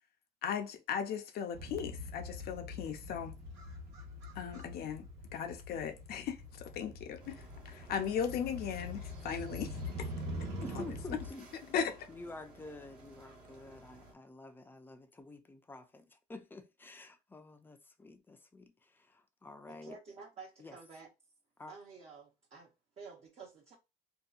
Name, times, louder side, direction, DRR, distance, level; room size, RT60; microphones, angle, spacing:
voice 1, 0.4-3.3 4.4-5.1 5.3-9.7 10.0-10.1 10.7-10.8 11.7-12.1, left 7 dB, 65° left, 0.5 m, -37 dB
Motorcycle, 1.5-11.3, left 1 dB, 90° right, 1.1 m, -44 dB
sound 1, 7.2-14.1, right 2 dB, 60° right, 1.0 m, -56 dB
voice 2, 10.6-11.4 12.1-20.0 20.6-20.8 21.6-21.7, left 2 dB, 10° left, 0.4 m, -49 dB
voice 3, 19.7-21.1 21.7-23.7, right 4 dB, 40° right, 0.6 m, -51 dB
2.7 x 2.2 x 2.4 m
cardioid pair, 110°, 17 cm